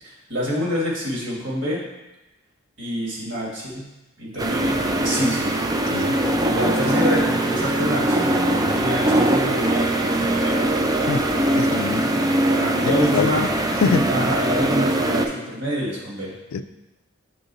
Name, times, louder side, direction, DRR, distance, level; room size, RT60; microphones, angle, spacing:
voice 1, 0.0-1.8 2.8-3.9 4.2-5.5 6.4-10.6 12.5-13.5 14.1-16.3, equal, 60° right, -4 dB, 1.8 m, -27 dB
sound 1, 4.4-15.3, right 1 dB, 20° right, 0.3 m, -21 dB
voice 2, 11.6-12.0 12.9-13.5 13.8-14.1 16.5-16.6, left 5 dB, 85° left, 10 dB, 0.3 m, -24 dB
6.2 x 3.9 x 4.0 m, 1.0 s
head